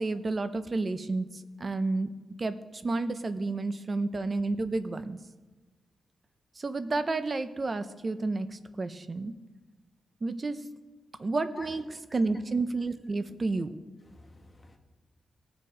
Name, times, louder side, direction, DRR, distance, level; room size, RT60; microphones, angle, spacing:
voice 1, 0.0-2.1 2.4-5.2 6.6-9.3 10.2-10.6 11.2-11.8 12.1-13.7, right 3 dB, 30° right, 11 dB, 0.6 m, -31 dB
voice 2, 11.5-11.8 12.2-12.4 14.1-14.8, left 2 dB, 15° left, 2 dB, 1.2 m, -47 dB
18.5 x 6.9 x 4.9 m, 1.2 s
wide cardioid pair, 155°, 0 cm